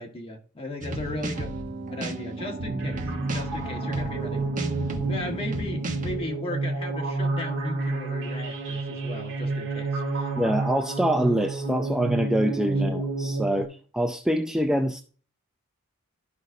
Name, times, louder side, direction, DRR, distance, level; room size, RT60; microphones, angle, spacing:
voice 1, 0.0-1.5 1.9-3.0 3.3-4.4 5.1-10.3 12.9-13.0, left 1 dB, 25° left, 1.5 m, -36 dB
sound 1, 0.8-6.2, right 2 dB, 35° right, 1.1 m, -33 dB
sound 2, 2.8-13.7, right 3 dB, 60° right, 1.8 m, -30 dB
voice 2, 10.4-13.7 13.9-15.0, equal, 5° right, 0.4 m, -25 dB
12.5 x 5.1 x 2.7 m
head